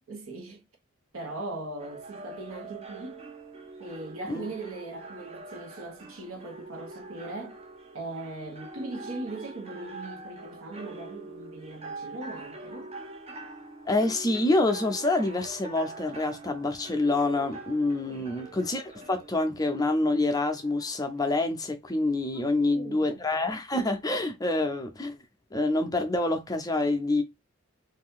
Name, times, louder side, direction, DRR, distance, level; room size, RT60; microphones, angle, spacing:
voice 1, 0.1-0.6 1.1-3.3 3.8-7.6 7.9-13.0 18.1-18.3 22.3-23.2, right 2 dB, 80° right, 1.0 m, -40 dB
sound 1, 1.8-21.4, right 2 dB, 30° right, 0.5 m, -44 dB
voice 2, 13.9-25.2 25.5-27.2, left 2 dB, 20° left, 0.5 m, -27 dB
2.7 x 2.5 x 3.5 m
head